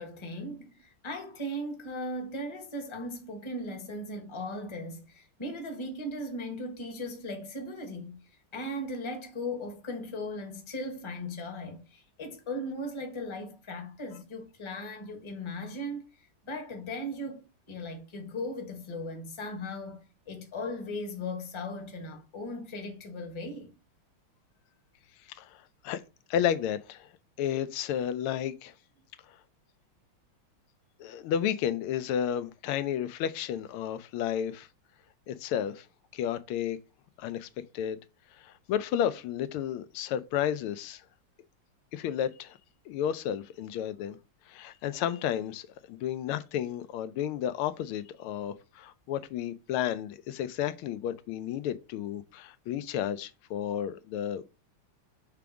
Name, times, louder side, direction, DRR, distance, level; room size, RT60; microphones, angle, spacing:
voice 1, 0.0-8.2 8.5-17.4 17.7-23.7, left 1 dB, 20° left, 0.9 m, -38 dB
voice 2, 25.3-26.0 26.3-27.1 27.4-28.7 31.0-34.7 35.3-35.9 36.1-36.8 37.2-37.5 37.7-38.0 38.4-41.0 41.9-42.6 42.9-44.2 44.5-54.4, left 10 dB, 85° left, 1.5 m, -32 dB
5.7 x 3.5 x 5.0 m
omnidirectional pair, 2.3 m